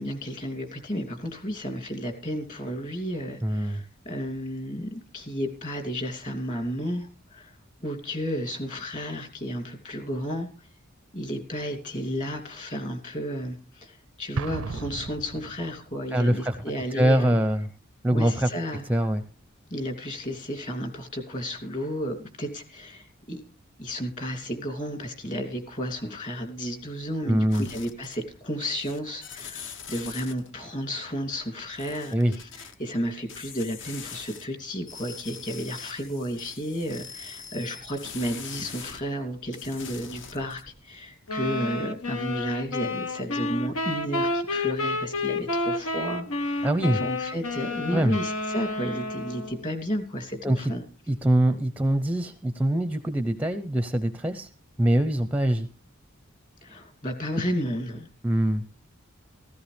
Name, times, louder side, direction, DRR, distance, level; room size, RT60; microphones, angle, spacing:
voice 1, 0.0-10.7 11.1-17.4 18.1-18.8 19.7-23.4 23.8-50.8 56.6-58.1, equal, 35° left, 5 dB, 2.8 m, -32 dB
voice 2, 3.4-3.8 16.1-16.6 16.9-17.7 18.0-18.5 18.9-19.2 27.2-27.6 32.1-32.3 46.6-47.0 47.9-48.2 50.4-50.7 51.1-54.5 54.8-55.7 58.2-58.6, right 1 dB, 5° right, 10 dB, 0.6 m, -23 dB
Explosion, 14.4-16.0, right 4 dB, 85° right, 0.6 m, -35 dB
sound 1, 27.5-28.4 28.6-30.5 31.7-32.7 33.3-34.4 34.8-39.0 39.4-40.7, left 6 dB, 60° left, 1.0 m, -42 dB
sound 2, 41.3-49.7, left 2 dB, 80° left, 1.1 m, -30 dB
16.0 x 15.0 x 3.4 m, 0.36 s
head